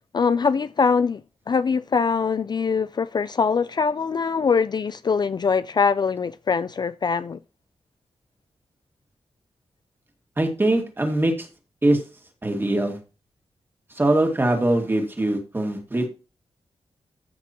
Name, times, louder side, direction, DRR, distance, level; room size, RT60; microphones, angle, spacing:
voice 1, 0.1-1.2 1.5-7.4, left 5 dB, 40° left, 0.4 m, -22 dB
voice 2, 10.4-11.5 11.8-12.0 12.4-13.0 14.0-16.1, right 1 dB, 20° right, 2.0 m, -22 dB
14.5 x 6.0 x 2.9 m
wide cardioid pair, 160°, 11 cm